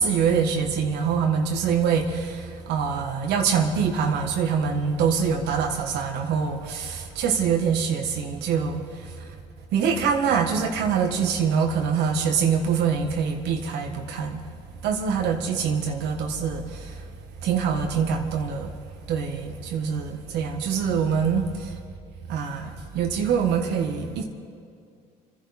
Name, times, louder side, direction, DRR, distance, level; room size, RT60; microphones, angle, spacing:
voice 1, 0.0-9.2 9.7-14.4 14.8-17.0 17.4-18.7 19.1-21.7 22.3-24.2, right 6 dB, 85° right, 2 dB, 1.6 m, -24 dB
28.5 x 11.0 x 4.3 m, 2.3 s
cardioid pair, 110°, 17 cm